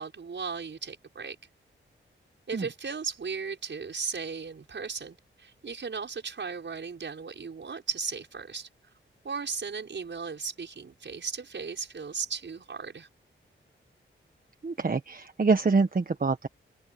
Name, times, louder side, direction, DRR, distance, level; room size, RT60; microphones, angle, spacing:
voice 1, 0.0-1.4 2.5-8.7 9.2-13.1, right 5 dB, 65° right, 6.5 m, -36 dB
voice 2, 14.6-16.5, right 4 dB, 45° right, 1.4 m, -25 dB
open air
wide cardioid pair, 80°, 21 cm